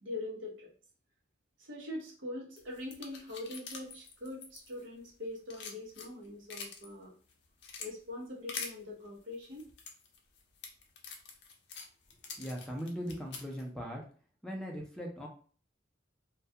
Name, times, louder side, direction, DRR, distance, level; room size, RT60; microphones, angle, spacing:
voice 1, 0.0-0.7 1.6-7.1 7.8-9.6, left 2 dB, 80° right, -3 dB, 0.8 m, -43 dB
sound 1, 2.6-5.1 5.4-6.9 7.3-7.9 8.5-8.7 9.4-13.6, left 5 dB, 60° left, 0.5 m, -45 dB
voice 2, 12.4-14.0 14.4-15.3, equal, 5° left, -1 dB, 0.4 m, -39 dB
2.2 x 2.2 x 2.7 m, 0.42 s
head